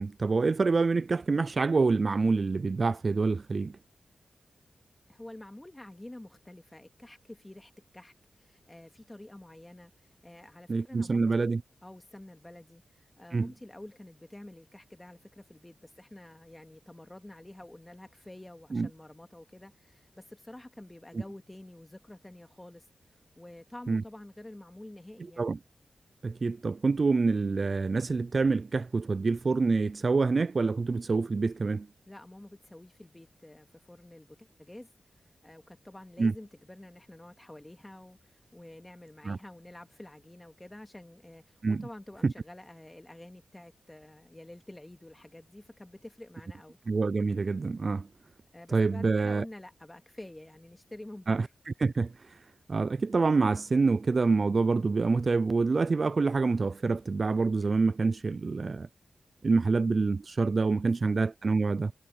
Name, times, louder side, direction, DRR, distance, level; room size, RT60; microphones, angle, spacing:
voice 1, 0.0-3.8 10.7-11.6 13.3-13.5 18.7-18.9 23.9-24.0 25.4-25.6 26.2-31.9 36.2-36.3 39.2-39.4 41.6-41.9 42.2-42.3 46.9-48.1 48.7-49.4 51.3-51.5 51.8-52.4 52.7-58.9 59.4-61.9, right 4 dB, 50° right, 0.4 m, -26 dB
voice 2, 5.1-11.5 11.8-22.9 23.4-25.5 32.1-34.9 35.4-46.8 48.5-51.5 60.8-61.1, left 1 dB, 15° left, 2.2 m, -48 dB
cardioid pair, 70°, 0 cm